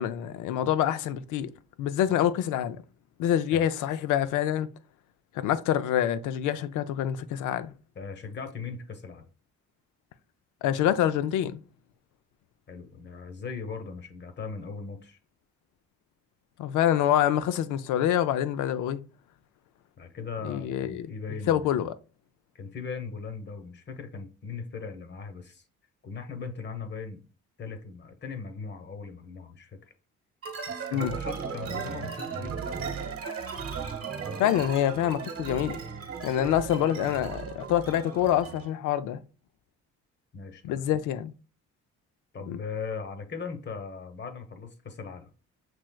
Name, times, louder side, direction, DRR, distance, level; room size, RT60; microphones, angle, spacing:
voice 1, 0.0-1.5 1.8-2.8 3.2-4.7 5.4-7.7 10.6-11.6 16.6-19.0 20.4-21.1 21.5-21.9 30.9-31.1 34.4-35.8 36.2-39.2 40.6-41.3 42.5-42.6, left 11 dB, 90° left, 0.5 m, -26 dB
voice 2, 7.9-9.3 12.7-15.2 20.0-21.8 22.5-25.6 26.0-27.2 27.6-29.8 30.7-32.6 40.3-40.9 42.3-45.3, left 5 dB, 35° left, 0.9 m, -39 dB
sound 1, 30.4-38.7, right 5 dB, 50° right, 1.0 m, -36 dB
6.0 x 3.1 x 2.2 m
cardioid pair, 90°, 30 cm